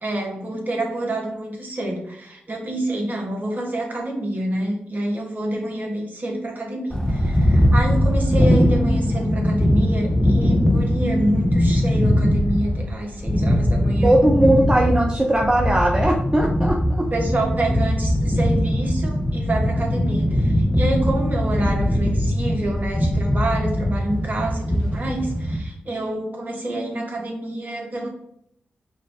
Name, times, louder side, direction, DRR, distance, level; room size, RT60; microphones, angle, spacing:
voice 1, 0.0-14.1 17.1-28.1, right 1 dB, 45° right, 0 dB, 1.5 m, -27 dB
sound 1, 6.9-25.6, equal, 15° left, 0.8 m, -20 dB
voice 2, 14.0-17.1, right 1 dB, 20° right, -1 dB, 0.7 m, -19 dB
5.4 x 2.6 x 3.5 m, 0.74 s
supercardioid pair, 40°, 4 cm